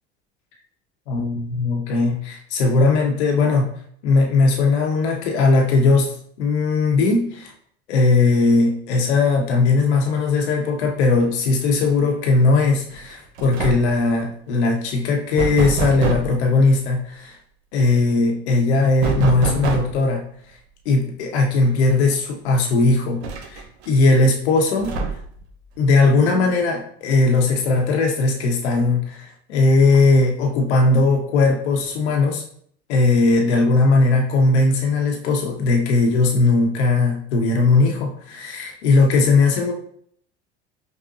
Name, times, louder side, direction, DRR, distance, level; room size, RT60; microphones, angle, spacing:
voice 1, 1.1-3.7 4.0-6.1 6.4-7.5 7.9-17.4 17.7-20.2 20.9-23.2 23.5-25.0 25.8-32.4 32.9-39.7, left 3 dB, 75° left, 2 dB, 0.8 m, -18 dB
sound 1, 12.9-13.1 13.4-14.0 15.4-16.4 19.0-20.1 21.6-21.7 22.1-22.2 23.2-23.9 24.8-25.4, right 5 dB, 75° right, 0.7 m, -26 dB
5.3 x 2.1 x 2.7 m, 0.62 s
hypercardioid pair, 75°, 33 cm